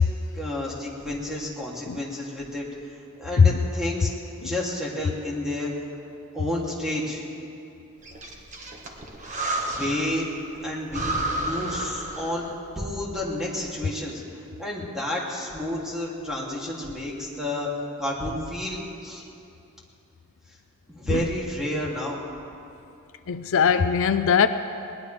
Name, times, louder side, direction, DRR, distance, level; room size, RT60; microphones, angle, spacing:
voice 1, 0.3-2.6 3.2-4.1 4.4-5.7 6.3-7.2 9.8-10.3 10.6-12.5 12.7-19.2 20.9-22.2, left 1 dB, ahead, -5 dB, 2.8 m, -30 dB
Breathing, 8.0-10.2 10.5-10.6 10.9-12.6, right 1 dB, 35° right, 1.6 m, -31 dB
voice 2, 23.3-24.5, left 6 dB, 65° left, 10 dB, 0.5 m, -20 dB
20.5 x 19.5 x 3.4 m, 2.6 s
head